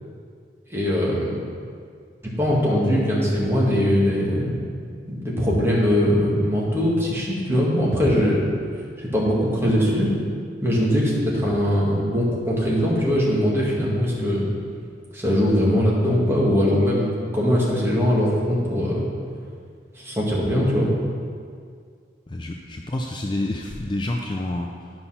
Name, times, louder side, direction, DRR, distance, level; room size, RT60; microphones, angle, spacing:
voice 1, 0.7-1.4 2.4-4.6 5.1-8.5 9.0-10.1 10.6-14.5 15.1-19.1 19.9-20.9, equal, 15° right, -5 dB, 1.8 m, -21 dB
voice 2, 22.3-24.9, left 1 dB, 25° left, 2 dB, 0.4 m, -28 dB
10.5 x 5.5 x 5.7 m, 2.2 s
head